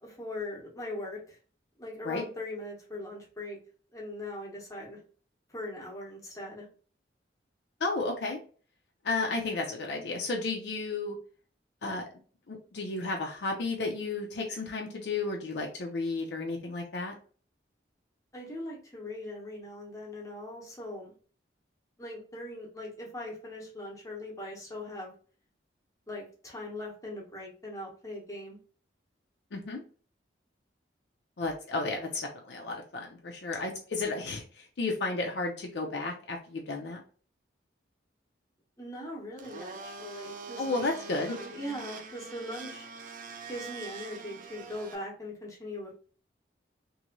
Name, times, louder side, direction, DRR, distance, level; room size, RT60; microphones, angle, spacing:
voice 1, 0.0-1.4 1.8-3.6 3.9-5.0 5.5-6.7 18.3-21.1 22.0-25.1 26.1-28.6 38.8-40.8 41.3-42.9 43.5-45.9, left 1 dB, 20° left, -3 dB, 0.9 m, -40 dB
voice 2, 7.8-8.4 9.0-11.2 11.8-12.1 12.5-17.1 29.5-29.8 31.4-37.0 40.6-41.3, left 3 dB, 65° left, 0 dB, 0.5 m, -33 dB
Domestic sounds home sounds, 39.4-44.9, right 4 dB, 45° right, 0.4 m, -43 dB
3.0 x 2.7 x 2.6 m, 0.41 s
head